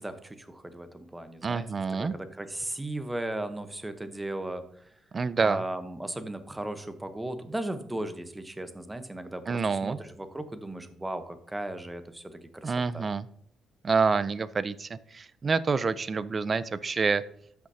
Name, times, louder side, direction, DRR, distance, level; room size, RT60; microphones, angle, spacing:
voice 1, 0.0-4.9 5.4-13.1, right 1 dB, 10° right, 9 dB, 1.0 m, -37 dB
voice 2, 1.4-2.1 5.1-5.6 9.5-10.0 12.6-13.2 13.8-17.2, right 4 dB, 35° right, 16 dB, 0.5 m, -27 dB
13.5 x 6.0 x 2.8 m, 0.68 s
cardioid pair, 90°, 0 cm